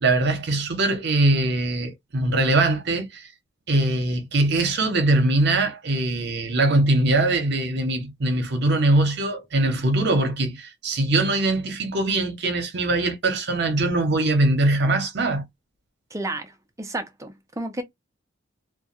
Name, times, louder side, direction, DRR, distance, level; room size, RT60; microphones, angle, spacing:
voice 1, 0.0-3.3 3.7-15.5, right 2 dB, 55° right, 0.8 m, -22 dB
voice 2, 16.1-16.5 16.8-17.8, right 2 dB, 15° right, 0.4 m, -31 dB
2.3 x 2.2 x 2.6 m
head